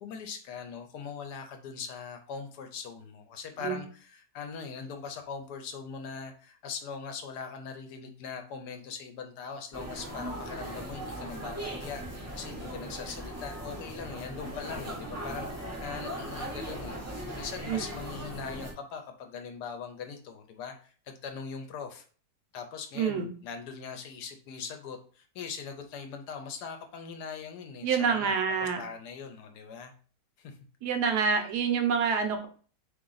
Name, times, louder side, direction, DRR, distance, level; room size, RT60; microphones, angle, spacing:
voice 1, 0.0-17.0 17.4-22.0 22.5-28.3 28.6-29.9 30.4-30.6, left 6 dB, 75° left, 5 dB, 1.1 m, -41 dB
sound 1, 9.7-18.7, right 1 dB, 20° right, 0.5 m, -39 dB
voice 2, 22.9-23.3 27.8-28.8 30.8-32.5, right 6 dB, 70° right, 6 dB, 1.2 m, -27 dB
3.7 x 3.1 x 3.9 m, 0.43 s
omnidirectional pair, 1.9 m